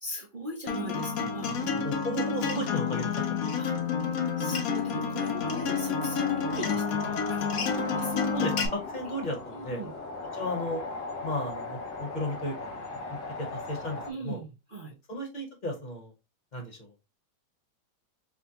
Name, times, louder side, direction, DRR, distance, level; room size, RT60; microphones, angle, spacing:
voice 1, 0.0-1.8 3.6-3.7 4.4-7.5 7.8-8.2 9.5-9.9 14.1-14.9, right 1 dB, 60° right, 1 dB, 0.5 m, -39 dB
Acoustic guitar, 0.7-8.7, left 6 dB, 60° left, 1.1 m, -29 dB
voice 2, 1.8-3.1 3.8-3.9 8.3-9.8 10.3-10.8 11.2-12.8 13.1-14.4 15.1-16.1 16.5-16.9, equal, 30° left, 2 dB, 1.0 m, -34 dB
sound 1, 5.4-14.1, left 2 dB, 80° left, 1.5 m, -38 dB
4.9 x 2.2 x 2.8 m, 0.26 s
omnidirectional pair, 1.9 m